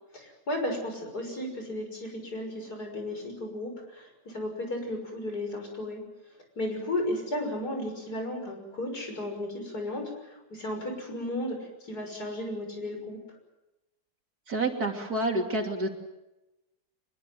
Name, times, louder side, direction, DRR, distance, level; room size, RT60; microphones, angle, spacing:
voice 1, 0.1-6.0 6.6-13.2, left 1 dB, 70° left, 3 dB, 6.8 m, -34 dB
voice 2, 14.5-15.9, right 2 dB, 65° right, 3 dB, 3.5 m, -28 dB
25.0 x 22.0 x 7.8 m, 0.96 s
omnidirectional pair, 1.8 m